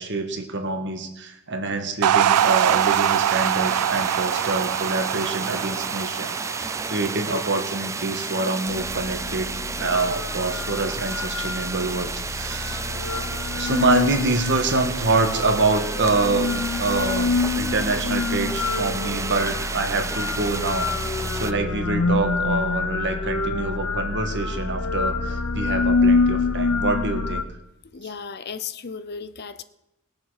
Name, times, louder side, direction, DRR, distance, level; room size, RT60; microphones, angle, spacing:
voice 1, 0.0-9.5 9.8-12.8 13.5-27.4, right 3 dB, 55° right, 5 dB, 1.5 m, -26 dB
sound 1, 2.0-8.5, right 10 dB, 80° right, 0.3 m, -24 dB
sound 2, 2.3-21.5, right 4 dB, 15° right, 0.4 m, -32 dB
sound 3, 8.7-27.4, left 3 dB, 80° left, 1.1 m, -26 dB
voice 2, 27.9-29.6, left 6 dB, 50° left, 14 dB, 0.6 m, -35 dB
20.5 x 6.9 x 4.9 m, 0.89 s
head